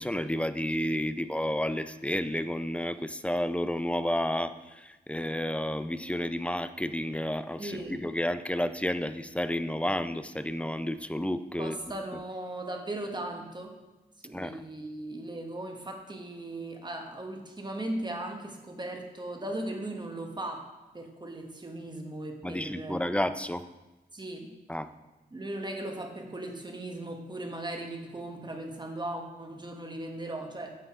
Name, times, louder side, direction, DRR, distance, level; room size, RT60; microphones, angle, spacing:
voice 1, 0.0-11.8 14.3-14.6 22.4-23.7 24.7-24.9, left 1 dB, 5° left, 11 dB, 0.4 m, -31 dB
voice 2, 7.6-8.0 11.6-13.8 14.2-20.7 20.9-23.0 24.1-24.5 25.3-30.7, right 1 dB, 25° right, 3 dB, 1.3 m, -38 dB
9.2 x 5.6 x 3.6 m, 1.1 s
cardioid pair, 65°, 17 cm